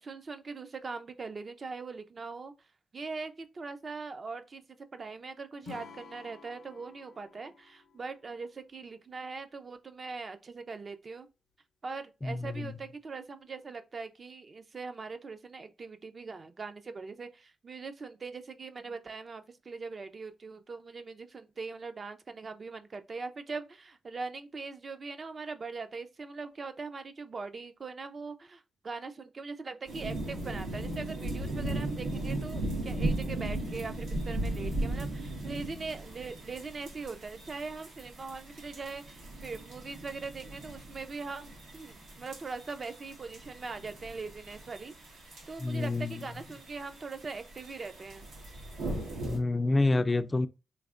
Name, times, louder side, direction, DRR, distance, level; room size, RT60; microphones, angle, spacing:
voice 1, 0.0-2.5 2.9-4.6 4.9-11.3 11.8-48.3, right 4 dB, 40° right, 0.5 m, -41 dB
Acoustic guitar / Strum, 5.6-8.9, left 6 dB, 90° left, 0.6 m, -52 dB
voice 2, 12.2-12.7 45.6-46.2 49.2-50.5, left 2 dB, 20° left, 0.3 m, -28 dB
sound 1, 29.9-49.4, right 1 dB, 85° right, 1.3 m, -37 dB
3.4 x 3.2 x 2.4 m
cardioid pair, 90°, 0 cm